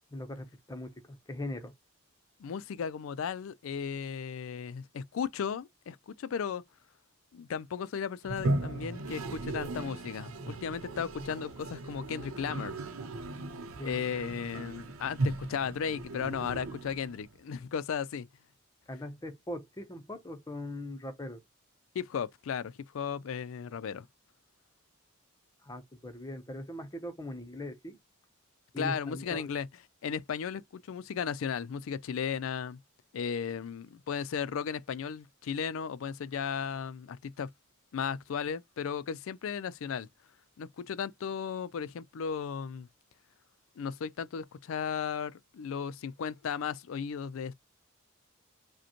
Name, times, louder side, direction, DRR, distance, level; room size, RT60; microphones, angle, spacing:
voice 1, 0.1-1.7 13.8-14.0 14.5-14.8 18.9-21.4 25.6-28.0 28.7-29.5, left 1 dB, 20° left, 0.7 m, -40 dB
voice 2, 2.4-6.6 7.3-12.7 13.8-18.3 21.9-24.1 28.8-29.7 30.0-32.8 33.1-37.5 37.9-40.1 40.6-42.9 43.8-47.5, left 7 dB, 70° left, 0.4 m, -35 dB
Toilet flush, 8.2-17.3, right 2 dB, 90° right, 0.7 m, -37 dB
5.0 x 2.1 x 2.9 m
head